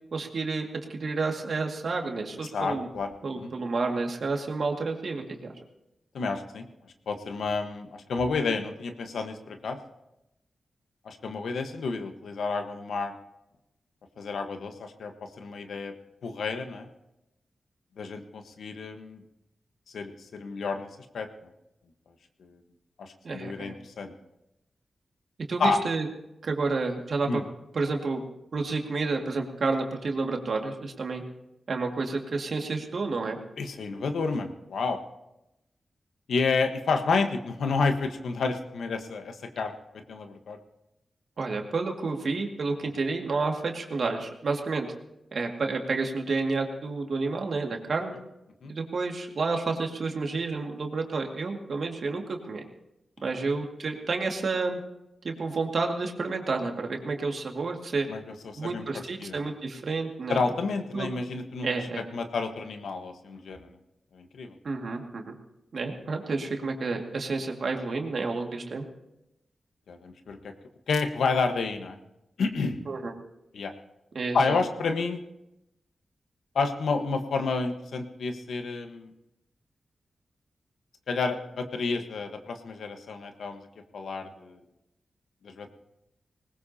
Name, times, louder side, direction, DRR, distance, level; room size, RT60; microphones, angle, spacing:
voice 1, 0.1-2.9 3.2-5.2 23.2-23.8 25.5-26.1 26.4-27.4 27.7-28.2 28.5-31.2 31.7-33.4 41.4-44.9 45.3-48.1 48.7-52.6 53.2-54.8 55.2-58.1 58.6-60.4 60.9-61.1 61.6-62.0 64.6-65.3 65.7-68.8 72.9-73.1 74.1-74.6, right 3 dB, 65° right, 2 dB, 2.1 m, -30 dB
voice 2, 2.5-3.1 3.4-3.5 6.1-6.7 7.1-9.8 11.0-13.1 14.2-15.9 16.2-16.9 18.0-19.2 19.9-20.9 21.1-21.3 22.4-22.6 23.0-24.1 25.6-25.8 27.3-27.4 33.6-35.0 36.3-39.7 40.1-40.6 48.6-48.7 58.1-58.2 58.4-58.8 59.2-59.4 60.3-61.7 62.1-63.7 64.1-64.5 69.9-70.5 70.9-72.0 72.4-72.8 73.5-73.7 74.3-75.2 76.5-79.1 81.1-83.7 83.9-84.6 85.4-85.7, left 4 dB, 90° left, 6 dB, 1.3 m, -30 dB
20.0 x 19.5 x 2.9 m, 0.90 s
cardioid pair, 70°, 0 cm